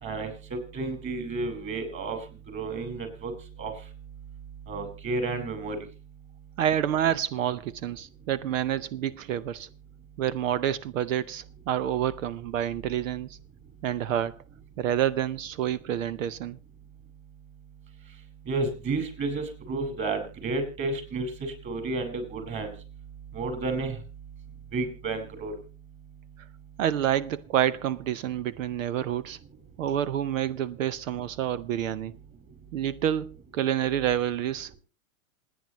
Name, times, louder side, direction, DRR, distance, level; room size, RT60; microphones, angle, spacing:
voice 1, 0.0-2.2 2.5-3.3 3.6-3.7 4.7-5.8 18.5-22.7 23.3-24.0 24.7-25.5, right 3 dB, 30° right, 4.8 m, -31 dB
voice 2, 6.6-9.7 10.2-13.4 13.8-14.4 14.8-16.6 26.8-29.4 29.8-32.1 32.7-34.7, right 10 dB, 65° right, 0.8 m, -28 dB
27.5 x 9.3 x 2.9 m
hypercardioid pair, 110°, 41 cm